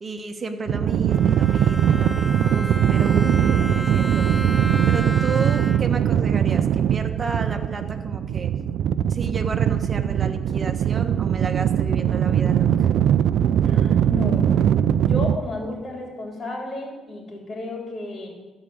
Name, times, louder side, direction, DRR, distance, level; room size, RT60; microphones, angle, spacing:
voice 1, 0.0-4.4 4.9-8.6 9.1-12.9, right 4 dB, 35° right, 5 dB, 1.3 m, -32 dB
sound 1, 0.7-15.4, right 9 dB, 75° right, 0.4 m, -21 dB
Bowed string instrument, 1.1-6.1, equal, ahead, 0.4 m, -33 dB
voice 2, 13.6-14.6 15.0-18.3, left 1 dB, 45° left, -1 dB, 3.6 m, -32 dB
13.5 x 5.0 x 8.5 m, 1.2 s
cardioid pair, 90°, 0 cm